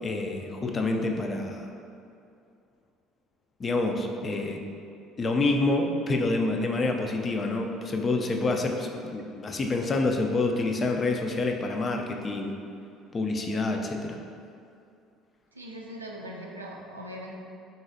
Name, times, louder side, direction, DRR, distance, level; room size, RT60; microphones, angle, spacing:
voice 1, 0.0-1.6 3.6-4.6 5.2-12.5 13.1-14.2, left 2 dB, 30° left, 3 dB, 0.4 m, -27 dB
voice 2, 15.5-17.3, equal, 85° right, -1 dB, 0.4 m, -40 dB
4.0 x 3.9 x 2.6 m, 2.5 s
figure-of-eight pair, 60°, 0 cm